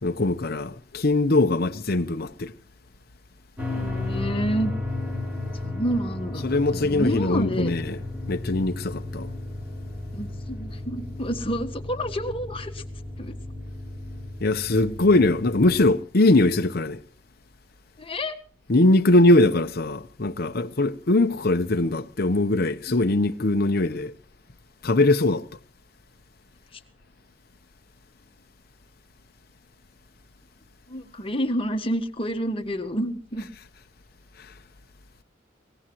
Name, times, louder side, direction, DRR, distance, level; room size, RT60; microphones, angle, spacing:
voice 1, 0.0-2.5 6.4-8.0 8.3-9.3 14.4-17.0 18.7-24.1 24.8-25.4, left 2 dB, 55° left, 0.9 m, -21 dB
sound 1, 3.6-15.9, left 2 dB, 5° right, 4.7 m, -34 dB
voice 2, 3.7-4.7 5.6-6.4 6.7-7.7 10.1-12.8 13.2-13.4 18.0-18.4 22.9-23.0 26.7-26.8 30.9-33.5, equal, 30° left, 1.6 m, -29 dB
23.0 x 19.0 x 3.0 m
head